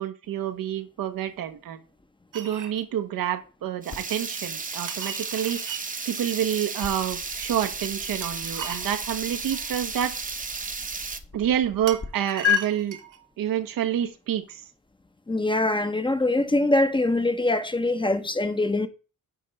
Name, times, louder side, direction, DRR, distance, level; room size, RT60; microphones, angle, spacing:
voice 1, 0.0-1.8 2.3-5.6 6.0-10.1 11.3-13.0 13.4-14.6, right 10 dB, 85° right, 1.1 m, -28 dB
sound 1, 2.3-2.8 4.9-5.8 8.2-9.7 11.9-13.2, right 8 dB, 65° right, 1.5 m, -38 dB
Water tap faucet / Liquid, 3.8-11.2, right 4 dB, 25° right, 0.8 m, -34 dB
sound 2, 3.9-12.1 12.4-12.6, left 9 dB, 40° left, 1.3 m, -34 dB
voice 2, 15.3-18.9, left 2 dB, 15° left, 0.8 m, -23 dB
9.8 x 3.4 x 5.3 m
cardioid pair, 90°, 33 cm